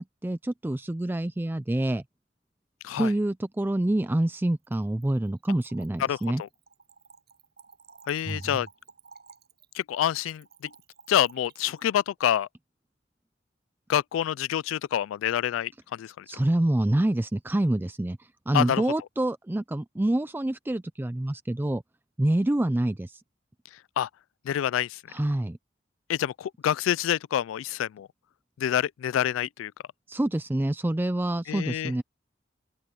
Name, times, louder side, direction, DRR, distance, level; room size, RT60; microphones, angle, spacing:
voice 1, 0.0-2.0 3.0-6.4 8.3-8.4 16.3-18.2 18.5-21.8 22.2-23.2 25.1-25.6 30.1-32.0, right 1 dB, 10° right, 0.4 m, -26 dB
Splash splatter / Trickle dribble, 4.5-11.9, right 5 dB, 55° right, 7.3 m, -54 dB
voice 2, 6.0-6.5 8.1-8.7 9.7-10.7 11.1-12.5 13.9-16.3 18.5-18.8 24.0-24.1 24.5-25.0 26.1-28.1 28.6-29.7 31.5-31.9, left 10 dB, 90° left, 0.3 m, -27 dB
open air
head